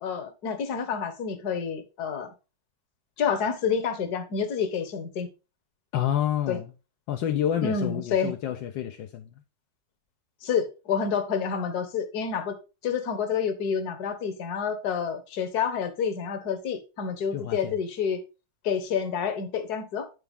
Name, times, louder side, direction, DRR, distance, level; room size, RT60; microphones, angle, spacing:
voice 1, 0.0-2.3 3.2-5.3 6.5-6.6 7.6-8.3 10.4-12.5 12.8-18.2 18.6-20.1, left 6 dB, 60° left, 1.5 m, -28 dB
voice 2, 5.9-6.7 7.1-9.3 17.3-17.7, left 10 dB, 80° left, 1.4 m, -28 dB
9.7 x 4.4 x 3.6 m
omnidirectional pair, 2.1 m